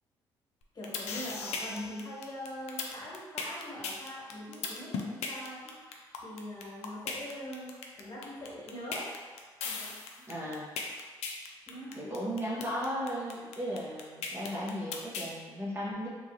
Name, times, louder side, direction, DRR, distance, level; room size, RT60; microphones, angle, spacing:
sound 1, 0.6-15.3, left 4 dB, 70° left, 0.4 m, -37 dB
voice 1, 0.7-5.6 6.2-9.1 9.6-9.9 11.7-12.2, left 1 dB, 35° left, -6 dB, 1.4 m, -42 dB
voice 2, 10.3-10.7 12.0-16.1, equal, 20° right, -7 dB, 0.9 m, -36 dB
3.1 x 2.3 x 2.8 m, 1.5 s
hypercardioid pair, 50°, 12 cm